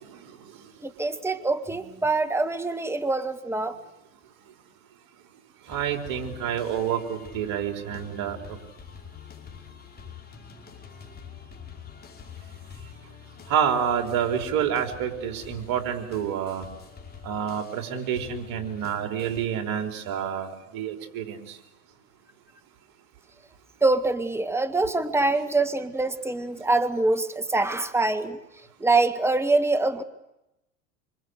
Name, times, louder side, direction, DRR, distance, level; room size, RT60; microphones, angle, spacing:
voice 1, 0.8-3.8 23.8-28.4 28.8-30.0, right 3 dB, 5° right, 10 dB, 1.8 m, -24 dB
sound 1, 5.7-19.5, left 7 dB, 20° left, 5.3 m, -46 dB
voice 2, 5.7-8.6 13.5-16.7 17.2-21.4, right 8 dB, 55° right, 5 dB, 4.6 m, -28 dB
26.0 x 25.5 x 8.2 m, 0.91 s
hypercardioid pair, 100°, 41 cm